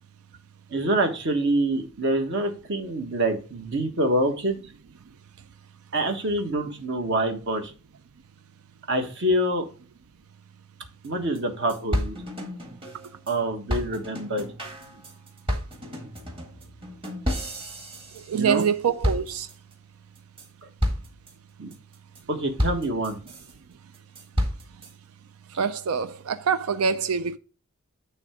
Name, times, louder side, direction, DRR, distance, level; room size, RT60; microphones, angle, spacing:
voice 1, 0.7-4.6 5.9-7.7 8.9-9.7 11.0-12.2 13.3-14.5 18.3-18.7 21.6-21.7 22.3-23.2, right 1 dB, 55° right, 1.3 m, -26 dB
sound 1, 11.0-11.1 11.3-11.4 11.7-13.3 13.7-18.7 19.0-19.7 20.1-20.5 20.8-21.3 21.7-22.2 22.6-23.5 23.9-24.9, equal, 25° right, 1.7 m, -30 dB
voice 2, 18.3-19.5 25.6-27.4, right 6 dB, 85° right, 0.5 m, -25 dB
9.7 x 3.4 x 4.8 m
head